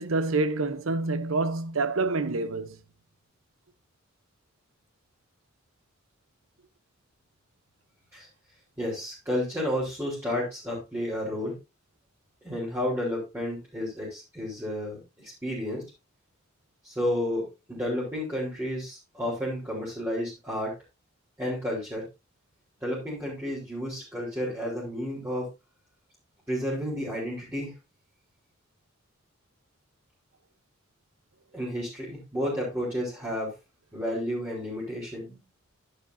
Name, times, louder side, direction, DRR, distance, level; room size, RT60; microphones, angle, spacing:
voice 1, 0.0-2.8, right 3 dB, 90° right, 0.9 m, -27 dB
voice 2, 8.8-11.6 12.4-15.8 16.8-20.8 21.4-22.1 22.8-25.5 26.5-27.7 31.5-33.5 33.9-35.4, equal, 15° right, 4.3 m, -31 dB
10.5 x 10.0 x 2.7 m
head